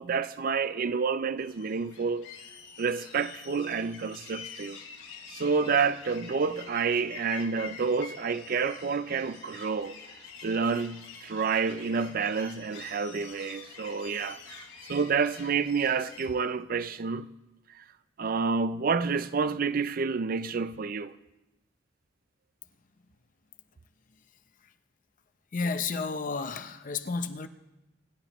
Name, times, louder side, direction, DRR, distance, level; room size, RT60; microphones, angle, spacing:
voice 1, 0.0-2.3 2.8-4.8 5.3-10.0 10.4-17.3 17.7-17.8 18.2-21.1, right 5 dB, 45° right, 0.4 m, -29 dB
sound 1, 1.4-16.3, left 6 dB, 80° left, 3.3 m, -47 dB
voice 2, 25.5-27.5, left 4 dB, 40° left, 0.6 m, -31 dB
25.0 x 11.5 x 3.0 m
head